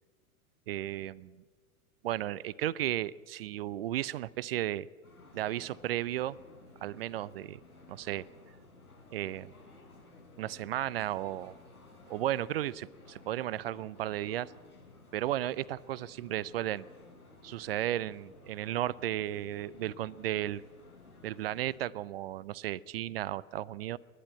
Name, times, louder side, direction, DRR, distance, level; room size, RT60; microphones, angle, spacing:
voice 1, 0.7-1.4 2.0-4.9 5.3-6.4 6.8-7.6 7.9-8.3 9.1-9.5 10.4-11.5 12.1-14.5 15.1-16.9 17.4-20.6 21.2-24.0, right 13 dB, 45° right, 22 dB, 0.5 m, -34 dB
sound 1, 5.0-21.8, left 3 dB, 85° left, 5.6 m, -56 dB
30.0 x 11.5 x 8.7 m, 1.5 s
figure-of-eight pair, 100°, 43 cm